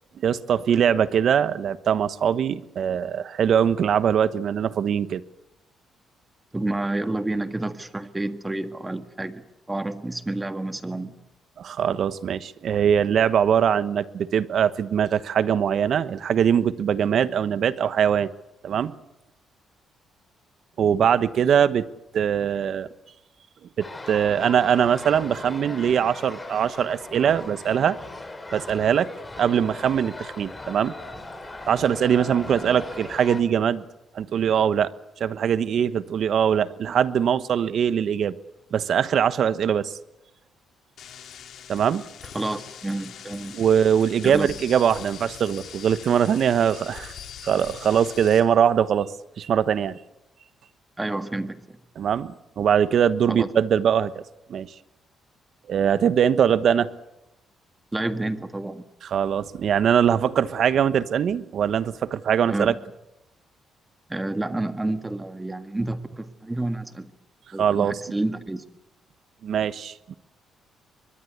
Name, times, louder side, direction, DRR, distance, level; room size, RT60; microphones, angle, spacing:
voice 1, 0.2-5.2 11.6-18.3 18.6-18.9 20.8-21.8 22.1-22.9 23.8-28.0 28.5-29.1 29.4-30.9 31.7-33.8 34.1-34.9 35.2-38.3 38.7-40.0 41.7-42.0 43.5-47.1 47.4-49.1 49.4-50.0 52.0-54.2 54.5-54.7 55.7-56.9 59.0-62.7 67.6-68.0 69.4-70.1, right 8 dB, 60° right, 15 dB, 1.1 m, -22 dB
voice 2, 6.5-11.2 42.3-43.6 44.2-44.5 51.0-51.6 53.3-53.5 57.9-58.8 62.5-62.8 64.1-67.1 67.5-68.6, right 2 dB, 15° right, 10 dB, 1.8 m, -29 dB
sound 1, 23.8-33.4, left 2 dB, 20° left, 3.9 m, -38 dB
sound 2, 41.0-48.4, left 9 dB, 70° left, 3.1 m, -42 dB
24.5 x 21.5 x 8.2 m, 0.91 s
cardioid pair, 90°, 0 cm